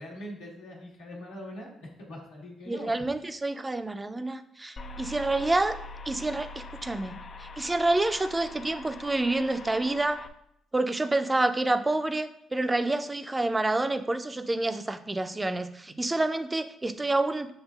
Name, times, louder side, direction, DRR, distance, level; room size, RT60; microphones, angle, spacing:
voice 1, 0.0-2.9, equal, 85° left, -4 dB, 1.3 m, -42 dB
voice 2, 2.7-5.8 6.1-7.1 7.4-10.2 10.7-17.5, right 2 dB, 20° right, 9 dB, 0.4 m, -28 dB
sound 1, 4.8-10.3, left 3 dB, 50° left, 0.3 m, -43 dB
7.4 x 2.6 x 2.4 m, 0.75 s
hypercardioid pair, 50°, 0 cm